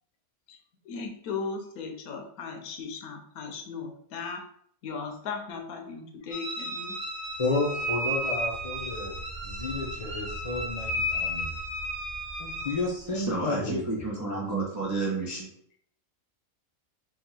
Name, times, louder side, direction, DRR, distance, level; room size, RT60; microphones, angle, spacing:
voice 1, 0.9-4.4 4.8-6.9, left 5 dB, 85° left, 4 dB, 1.2 m, -37 dB
sound 1, 6.3-12.8, equal, 40° right, 1.2 m, -33 dB
sound 2, 7.0-13.8, right 3 dB, 35° left, 0.8 m, -44 dB
voice 2, 7.4-11.5 12.4-13.9, left 3 dB, 65° left, -4 dB, 0.3 m, -31 dB
voice 3, 13.1-15.5, right 3 dB, 25° right, -5 dB, 0.4 m, -31 dB
3.4 x 2.4 x 4.2 m, 0.64 s
omnidirectional pair, 1.5 m